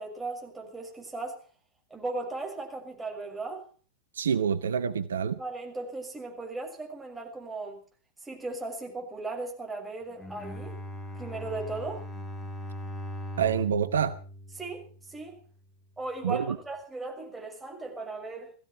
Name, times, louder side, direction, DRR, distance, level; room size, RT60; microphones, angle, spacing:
voice 1, 0.0-1.4 1.9-3.7 5.4-7.8 8.2-10.8 11.1-12.1 14.6-15.4 16.0-18.5, right 3 dB, 10° right, 6.3 m, -37 dB
voice 2, 4.1-5.4 13.4-14.2 16.2-16.6, right 7 dB, 65° right, 0.8 m, -27 dB
Bowed string instrument, 10.1-15.4, equal, 15° left, 3.0 m, -40 dB
19.5 x 15.0 x 4.6 m
figure-of-eight pair, 90°, 0 cm